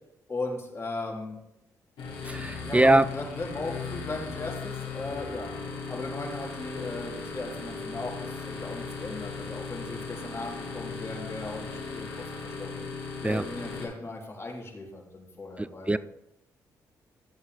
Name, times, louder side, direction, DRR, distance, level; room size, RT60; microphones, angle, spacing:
voice 1, 0.3-1.4 2.6-12.1 12.4-12.8 13.2-16.0, left 2 dB, 30° left, 3.0 m, -37 dB
sound 1, 2.0-13.8, left 4 dB, 75° left, 1.8 m, -37 dB
voice 2, 2.2-3.0 13.2-13.4 15.6-16.0, right 2 dB, 15° right, 0.4 m, -22 dB
12.0 x 7.2 x 3.4 m
hypercardioid pair, 40°, 9 cm